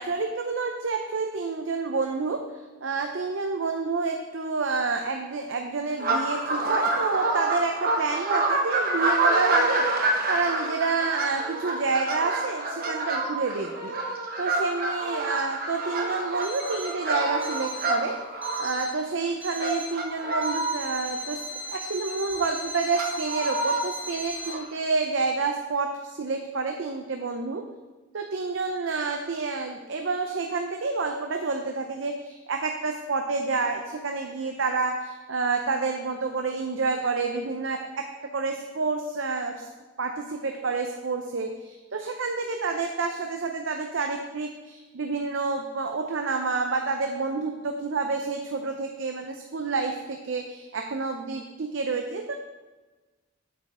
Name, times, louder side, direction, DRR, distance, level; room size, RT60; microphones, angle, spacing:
voice 1, 0.0-2.4 2.8-9.9 10.3-13.9 14.4-18.2 18.6-21.4 21.7-27.7 28.1-38.0 38.3-39.6 40.0-52.3, right 4 dB, 65° right, 4 dB, 0.6 m, -29 dB
sound 1, 6.0-18.8 19.5-20.8 21.4-21.5 21.8-21.9 22.3-22.4 22.9-23.8 24.3-24.6, right 2 dB, 45° right, 1.1 m, -27 dB
Alarm, 16.4-17.0 17.4-18.0 18.4-19.0 19.4-20.0 20.4-24.5, equal, 5° right, 1.2 m, -37 dB
7.7 x 7.5 x 4.2 m, 1.2 s
head